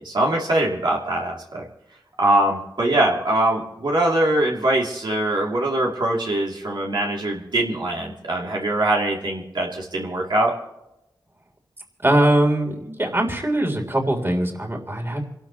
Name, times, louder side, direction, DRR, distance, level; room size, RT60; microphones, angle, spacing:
voice 1, 0.0-1.6 2.2-10.5, right 1 dB, 75° right, -2 dB, 2.8 m, -22 dB
voice 2, 12.0-15.2, right 1 dB, 30° right, 2 dB, 3.5 m, -21 dB
28.5 x 12.5 x 3.1 m, 0.89 s
wide cardioid pair, 60°, 8 cm